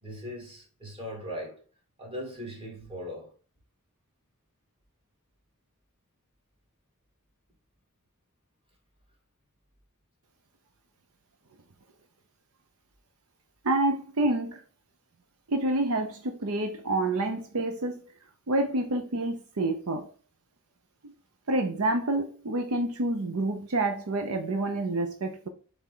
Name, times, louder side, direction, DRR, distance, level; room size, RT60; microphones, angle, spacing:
voice 1, 0.0-1.6 2.0-3.3, equal, 25° right, 2.7 m, -39 dB
voice 2, 13.6-14.6 15.5-18.0 18.5-20.1 21.0-21.1 21.5-25.5, right 2 dB, 75° right, 0.8 m, -28 dB
7.3 x 3.5 x 3.8 m
head